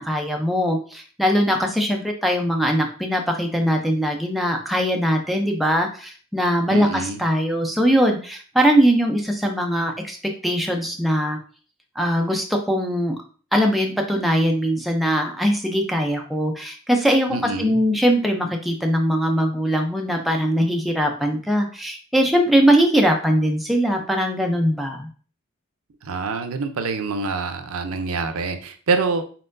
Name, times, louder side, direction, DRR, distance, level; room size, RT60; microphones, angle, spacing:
voice 1, 0.0-10.2 10.4-11.4 12.0-13.2 13.5-25.1, equal, ahead, 1 dB, 0.5 m, -21 dB
voice 2, 6.7-7.2 17.3-17.8 26.0-29.2, right 4 dB, 75° right, 7 dB, 0.6 m, -26 dB
4.3 x 3.7 x 2.6 m, 0.40 s
head